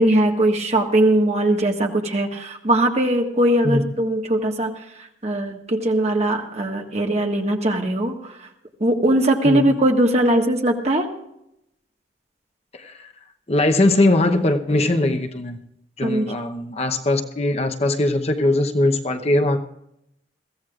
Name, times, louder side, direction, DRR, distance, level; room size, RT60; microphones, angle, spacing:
voice 1, 0.0-4.7 5.2-8.3 8.8-11.1 16.0-16.3, right 1 dB, 40° right, 1.6 m, -20 dB
voice 2, 12.7-13.1 13.5-15.6 16.0-19.6, left 2 dB, 35° left, 0.8 m, -20 dB
22.0 x 15.5 x 2.5 m
head